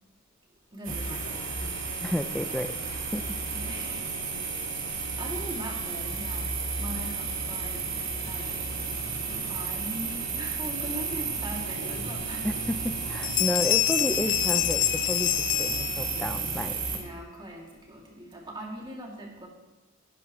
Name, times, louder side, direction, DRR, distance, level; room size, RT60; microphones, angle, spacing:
voice 1, 0.7-1.5 3.5-4.2 4.4-7.9 8.2-8.5 9.5-12.5 14.2-14.3 16.9-19.5, right 1 dB, 25° right, -2 dB, 2.6 m, -41 dB
sound 1, 0.8-17.0, right 4 dB, 75° right, 2.8 m, -33 dB
voice 2, 2.0-3.4 12.4-16.8, equal, 5° left, 9 dB, 0.5 m, -32 dB
Bell, 12.8-13.0 13.2-16.4, left 16 dB, 60° left, 0.5 m, -26 dB
16.0 x 11.5 x 3.2 m, 1.1 s
head